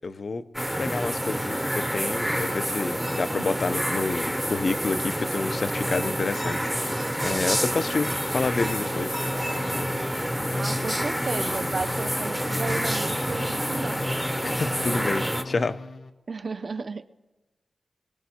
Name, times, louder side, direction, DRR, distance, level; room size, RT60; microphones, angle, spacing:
voice 1, 0.0-0.4 0.8-9.2 14.4-15.8, left 3 dB, 45° left, 12 dB, 0.5 m, -29 dB
sound 1, 0.5-15.4, equal, ahead, 0.6 m, -28 dB
sound 2, 6.8-15.0, left 3 dB, 65° left, 1.5 m, -48 dB
sound 3, 8.5-16.1, left 2 dB, 85° left, 1.1 m, -36 dB
voice 2, 10.5-14.0 16.3-17.1, right 4 dB, 45° right, 11 dB, 0.5 m, -33 dB
24.5 x 19.5 x 2.8 m, 1.1 s
wide cardioid pair, 150°, 0 cm